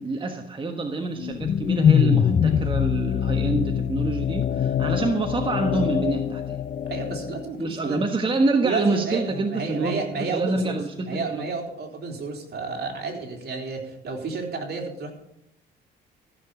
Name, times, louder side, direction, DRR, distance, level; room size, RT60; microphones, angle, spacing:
voice 1, 0.0-6.6 7.6-10.0 10.3-11.4, right 3 dB, 25° right, 4 dB, 1.4 m, -26 dB
sound 1, 1.2-7.5, left 8 dB, 40° left, 0.6 m, -23 dB
voice 2, 6.9-8.0 8.6-10.8 11.0-15.1, right 4 dB, 55° right, 2 dB, 3.6 m, -31 dB
14.5 x 6.9 x 8.3 m, 0.79 s
cardioid pair, 90°, 20 cm